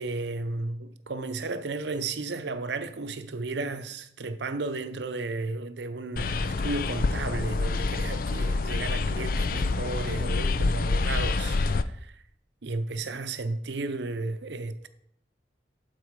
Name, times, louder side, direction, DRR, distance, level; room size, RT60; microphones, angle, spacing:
voice 1, 0.0-12.2 12.6-14.9, right 3 dB, 85° right, 0.7 m, -34 dB
sound 1, 6.2-11.8, left 3 dB, 50° left, 0.4 m, -27 dB
12.0 x 4.5 x 4.7 m
head